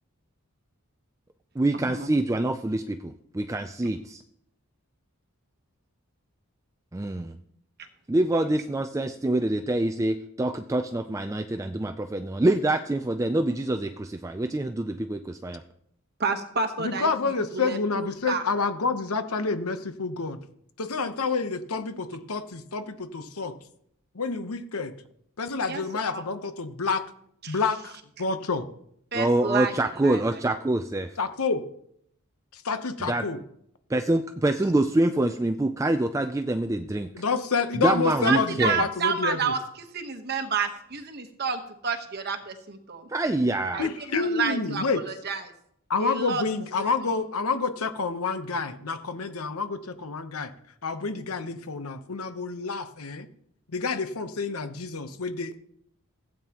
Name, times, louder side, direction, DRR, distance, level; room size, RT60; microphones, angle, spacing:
voice 1, 1.6-4.0 6.9-7.4 8.1-15.6 29.1-31.1 33.0-33.2 33.9-37.1 37.7-38.8 43.1-43.9, right 1 dB, 15° right, 8 dB, 0.3 m, -25 dB
voice 2, 16.2-18.4 21.0-21.1 25.7-25.8 26.1-26.2 27.4-27.6 29.1-29.7 30.0-30.3 37.8-43.1 43.7-45.5 46.0-46.4 46.8-46.9, right 5 dB, 45° right, 6 dB, 1.1 m, -30 dB
voice 3, 16.8-20.4 20.8-23.5 24.1-24.9 25.4-27.0 27.5-27.9 28.2-28.7 31.2-31.6 32.5-33.4 37.1-39.5 43.8-45.0 45.9-50.5 50.8-53.3 53.7-55.6, left 4 dB, 80° left, 10 dB, 0.9 m, -28 dB
16.0 x 9.0 x 3.0 m, 0.71 s
head